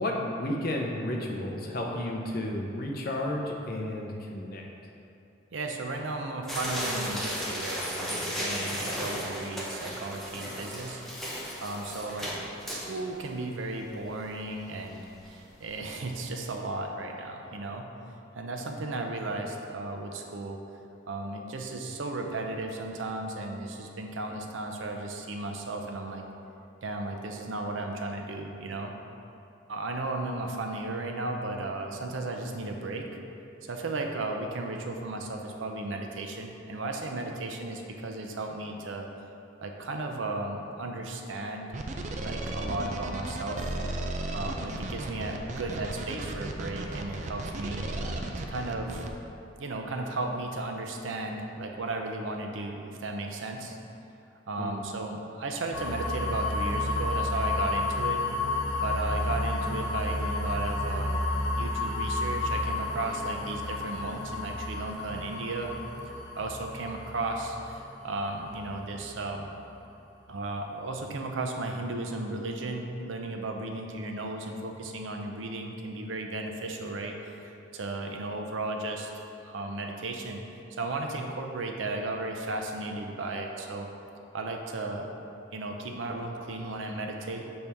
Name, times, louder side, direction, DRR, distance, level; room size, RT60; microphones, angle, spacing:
voice 1, 0.0-4.6 54.6-54.8, left 1 dB, 50° left, 0 dB, 0.7 m, -32 dB
voice 2, 5.5-11.0 11.6-12.3 12.7-17.8 18.3-20.6 21.1-26.2 26.8-28.9 29.7-33.1 33.6-39.1 39.6-41.7 42.2-43.7 44.3-47.8 48.4-49.1 49.6-53.8 54.5-58.2 58.8-61.2 61.5-65.7 66.4-69.5 70.3-77.4 77.7-79.1 79.4-80.4 80.7-83.9 84.3-85.1 85.5-87.4, right 2 dB, 90° right, 3 dB, 0.6 m, -35 dB
sound 1, 6.5-13.3 13.7-13.8 14.1-14.2 14.7-14.9 15.3-15.4 15.7-15.8, equal, ahead, 0.8 m, -34 dB
sound 2, 41.7-49.1, right 2 dB, 40° right, 0.4 m, -35 dB
sound 3, 55.7-69.5, left 2 dB, 80° left, 1.5 m, -31 dB
6.5 x 4.3 x 3.5 m, 2.7 s
head